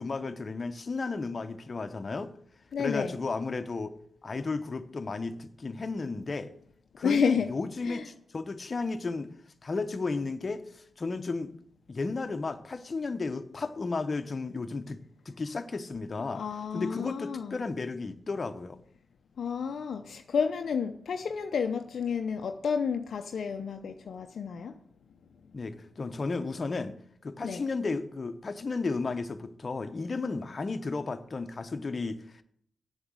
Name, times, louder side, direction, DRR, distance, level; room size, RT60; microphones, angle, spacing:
voice 1, 0.0-2.3 2.8-3.9 4.2-6.5 7.0-9.3 9.6-11.5 11.9-16.4 16.7-18.8 25.5-27.0 27.2-32.4, left 3 dB, 45° left, 0.9 m, -34 dB
voice 2, 2.7-3.1 7.0-7.5 7.9-8.0 16.3-17.6 19.4-24.7 27.4-27.6, left 6 dB, 70° left, 0.6 m, -30 dB
7.9 x 7.1 x 7.8 m
supercardioid pair, 40°, 0 cm